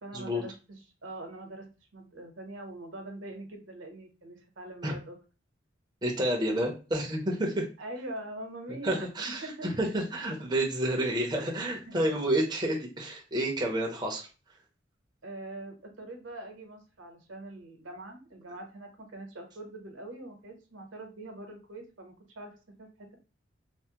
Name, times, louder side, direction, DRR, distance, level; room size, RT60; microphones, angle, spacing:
voice 1, 0.0-5.2 7.8-9.1 9.4-9.7 11.7-11.9 15.2-23.1, right 1 dB, 80° right, 3 dB, 0.8 m, -43 dB
voice 2, 6.0-7.7 8.8-14.3, right 1 dB, 20° right, 0 dB, 0.5 m, -29 dB
3.3 x 2.0 x 2.7 m, 0.33 s
head